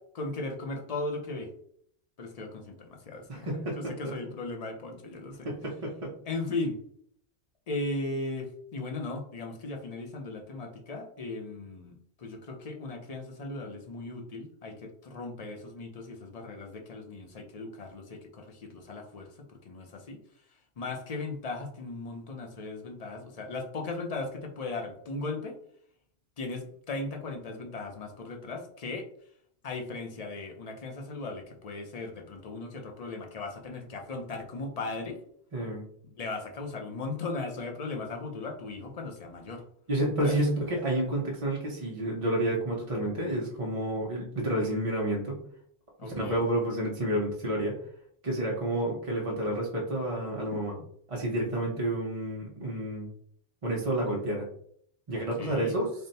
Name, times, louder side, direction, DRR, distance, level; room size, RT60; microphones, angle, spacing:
voice 1, 0.1-1.5 2.2-5.5 6.3-6.8 7.7-11.9 12.2-20.2 20.8-25.6 26.4-29.1 29.6-35.2 36.0-39.6 40.2-40.4 46.0-46.5 55.1-55.8, left 3 dB, 45° left, 3 dB, 0.6 m, -37 dB
voice 2, 3.3-4.1 5.4-6.1 35.5-35.8 39.9-45.4 46.0-47.8 48.2-50.7 51.1-53.1 53.6-54.5 55.1-55.9, right 1 dB, 35° right, -3 dB, 0.7 m, -30 dB
3.5 x 2.1 x 4.0 m, 0.65 s
omnidirectional pair, 1.1 m